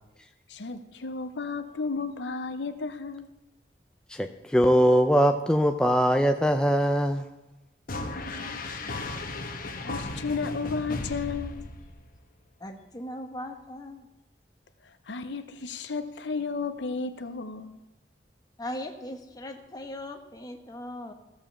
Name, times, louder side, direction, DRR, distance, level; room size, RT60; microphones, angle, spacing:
voice 1, 0.5-3.3 8.5-8.9 9.6-11.7 15.1-17.8, left 4 dB, 80° left, 0.7 m, -33 dB
voice 2, 4.1-7.3, equal, 5° left, 0.4 m, -22 dB
sound 1, 7.9-12.2, left 2 dB, 55° left, 1.1 m, -35 dB
voice 3, 12.6-14.1 18.6-21.1, left 1 dB, 20° left, 1.1 m, -39 dB
14.5 x 5.2 x 7.2 m
head